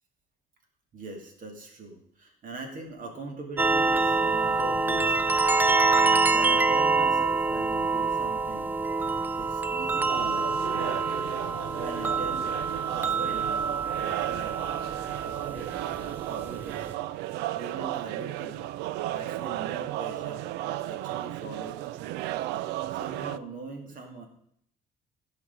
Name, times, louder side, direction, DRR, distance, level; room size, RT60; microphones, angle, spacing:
voice 1, 0.9-5.5 5.9-11.0 11.4-12.6 12.9-13.6 14.0-14.6 15.2-17.0 17.5-18.7 19.1-22.1 22.9-24.3, right 3 dB, 55° right, 3 dB, 2.2 m, -42 dB
sound 1, 3.6-16.9, right 4 dB, 10° right, 0.5 m, -26 dB
sound 2, 10.1-23.4, right 15 dB, 90° right, 0.4 m, -34 dB
15.5 x 5.1 x 5.2 m, 0.68 s
cardioid pair, 110°, 17 cm